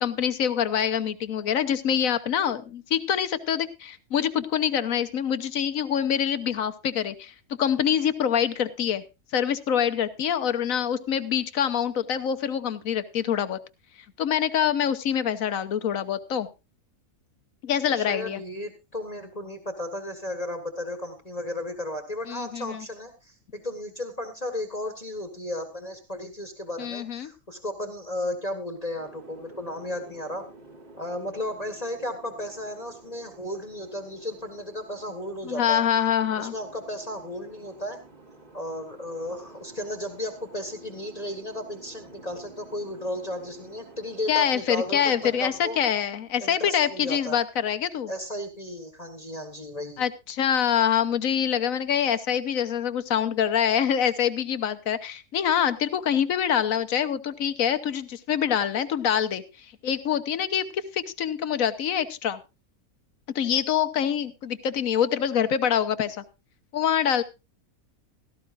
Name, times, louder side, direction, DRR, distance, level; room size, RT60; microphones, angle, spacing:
voice 1, 0.0-7.3 7.6-9.0 9.3-13.6 14.2-16.5 17.6-18.4 22.3-22.8 26.8-27.3 35.4-36.5 44.3-48.1 50.0-62.4 63.3-66.2 66.7-67.2, left 9 dB, 65° left, 11 dB, 1.3 m, -25 dB
voice 2, 17.9-30.4 31.0-36.0 36.4-38.0 38.5-45.8 46.4-47.4 48.1-50.0, left 1 dB, 25° left, 6 dB, 1.5 m, -34 dB
Boat Water vehicle, 28.9-45.7, right 2 dB, 30° right, 2.3 m, -50 dB
16.5 x 13.5 x 2.5 m, 0.26 s
omnidirectional pair, 1.6 m